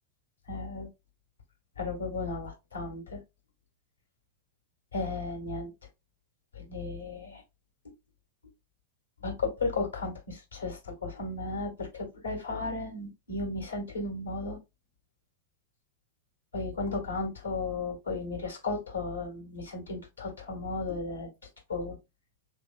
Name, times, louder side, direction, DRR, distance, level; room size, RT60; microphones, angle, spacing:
voice 1, 0.5-0.9 1.8-3.2 4.9-5.7 6.5-7.4 9.2-14.6 16.5-21.3 21.7-22.0, left 3 dB, 80° left, 1 dB, 1.5 m, -34 dB
3.3 x 3.0 x 2.2 m, 0.23 s
figure-of-eight pair, 90°, 0 cm